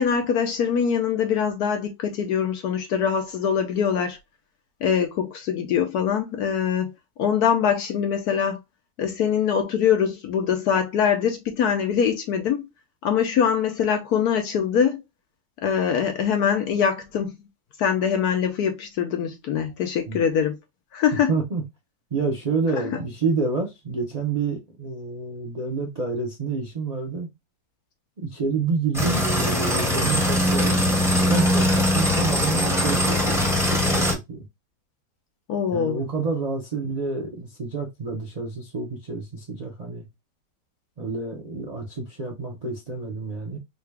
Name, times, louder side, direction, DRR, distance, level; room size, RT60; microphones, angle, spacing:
voice 1, 0.0-4.2 4.8-6.9 7.2-8.6 9.0-12.7 13.0-15.0 15.6-17.3 17.8-20.6 20.9-21.3 35.5-36.0, left 7 dB, 70° left, 1.0 m, -23 dB
voice 2, 21.3-21.6 22.1-27.3 28.2-30.8 31.2-34.5 35.7-40.1 41.0-43.6, right 4 dB, 65° right, 0.4 m, -28 dB
sound 1, 28.9-34.1, left 1 dB, ahead, 1.2 m, -21 dB
3.8 x 2.3 x 3.2 m
omnidirectional pair, 2.1 m